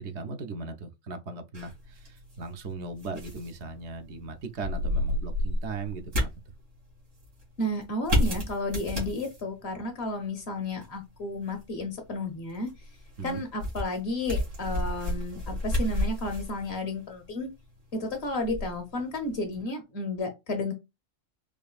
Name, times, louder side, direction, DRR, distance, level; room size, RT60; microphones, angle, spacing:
voice 1, 0.0-6.3 13.2-13.4, right 3 dB, 70° right, 0.9 m, -38 dB
sound 1, 1.5-19.6, left 1 dB, 85° right, 2.5 m, -33 dB
voice 2, 7.6-12.7 13.2-17.5 17.9-20.7, left 2 dB, 60° left, 1.2 m, -32 dB
4.8 x 2.5 x 2.4 m
omnidirectional pair, 1.2 m